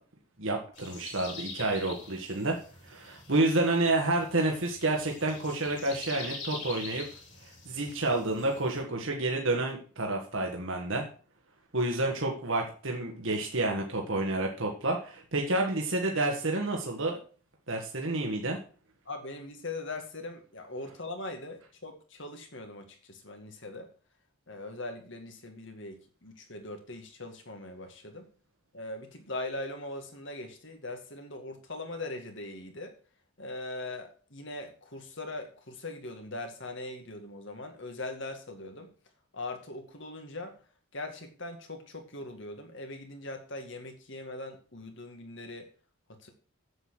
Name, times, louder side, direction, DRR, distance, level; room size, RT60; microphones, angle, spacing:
voice 1, 0.4-2.6 2.8-7.1 7.7-11.0 11.7-17.2 17.7-18.6, right 2 dB, 60° right, 1 dB, 1.7 m, -29 dB
sound 1, 0.7-8.8, left 4 dB, 35° left, 3.3 m, -45 dB
voice 2, 19.1-23.9 24.5-28.3 28.7-32.9 33.4-38.9 39.3-40.5 40.9-45.7 46.1-46.3, left 2 dB, 55° left, 5 dB, 2.2 m, -41 dB
8.1 x 8.0 x 6.5 m, 0.40 s
head